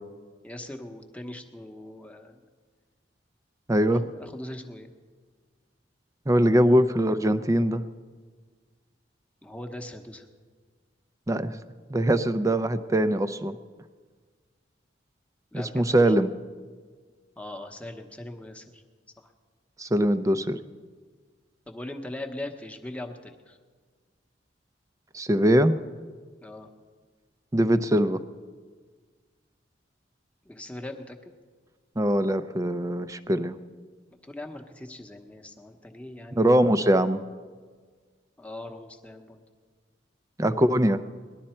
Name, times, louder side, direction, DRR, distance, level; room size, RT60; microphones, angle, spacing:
voice 1, 0.4-2.4 3.9-4.9 9.4-10.2 15.5-16.1 17.4-18.8 21.7-23.6 26.4-26.7 30.4-31.3 34.2-36.5 38.4-39.4, left 1 dB, 5° left, 4 dB, 0.9 m, -40 dB
voice 2, 3.7-4.0 6.3-7.8 11.3-11.6 11.9-13.6 15.5-16.3 19.8-20.6 25.1-25.7 27.5-28.2 32.0-33.5 36.4-37.2 40.4-41.0, right 1 dB, 20° right, 12 dB, 0.5 m, -22 dB
19.0 x 11.5 x 4.3 m, 1.6 s
head